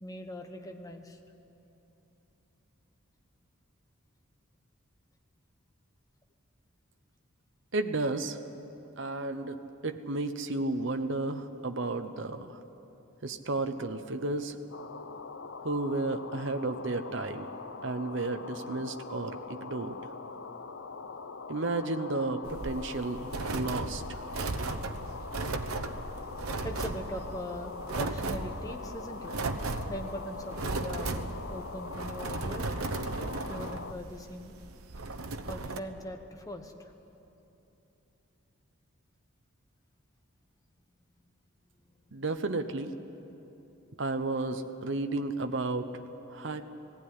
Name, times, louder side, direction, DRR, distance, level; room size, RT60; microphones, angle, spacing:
voice 1, 0.0-1.2 26.6-29.3 29.9-31.2 31.5-32.7 33.5-34.6 35.5-36.9 41.8-41.9, equal, 15° left, 4 dB, 1.1 m, -41 dB
voice 2, 7.7-8.4 9.0-12.6 13.2-14.5 15.6-17.5 17.8-20.0 21.5-24.0 42.1-42.9 44.0-46.0 46.3-46.6, right 2 dB, 60° right, 7 dB, 0.9 m, -32 dB
sound 1, 14.7-33.9, left 4 dB, 60° left, 0.7 m, -43 dB
sound 2, 22.4-35.8, right 3 dB, 85° right, 1.0 m, -36 dB
18.5 x 15.5 x 9.6 m, 3.0 s
head